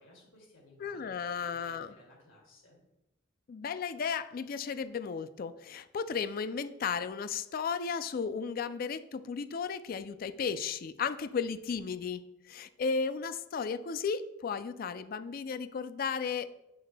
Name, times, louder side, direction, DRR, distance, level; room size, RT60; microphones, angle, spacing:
voice 1, 0.0-2.8, left 1 dB, 85° left, -2 dB, 2.5 m, -58 dB
voice 2, 0.8-1.9 3.5-16.5, left 5 dB, 45° left, 13 dB, 0.3 m, -34 dB
7.6 x 6.5 x 2.2 m, 0.89 s
head